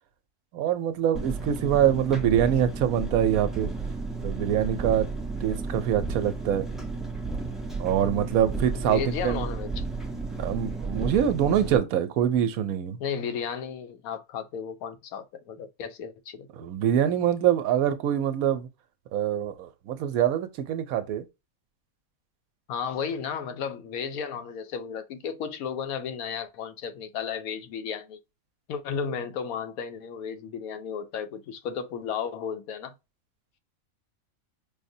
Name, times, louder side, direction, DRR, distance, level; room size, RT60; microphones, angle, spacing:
voice 1, 0.5-3.7 4.2-5.1 5.4-6.7 7.8-9.5 10.4-13.0 16.6-18.7 19.1-21.2, right 10 dB, 80° right, 1.0 m, -24 dB
Engine, 1.1-11.8, right 3 dB, ahead, 0.3 m, -33 dB
voice 2, 8.7-9.8 13.0-16.5 22.7-28.2 28.7-33.0, left 7 dB, 80° left, 1.1 m, -34 dB
5.0 x 2.1 x 2.6 m
omnidirectional pair, 1.5 m